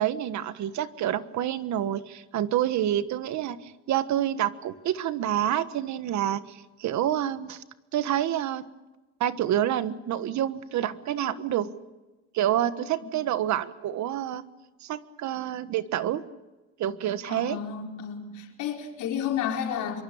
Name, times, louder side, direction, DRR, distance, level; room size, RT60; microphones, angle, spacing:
voice 1, 0.0-7.6 7.9-8.7 9.2-11.7 12.3-14.4 14.8-16.2 16.8-17.6, right 11 dB, 70° right, 13 dB, 1.4 m, -28 dB
voice 2, 17.3-20.0, left 8 dB, 80° left, 2 dB, 4.7 m, -31 dB
25.0 x 23.5 x 7.2 m, 1.1 s
cardioid pair, 100°, 30 cm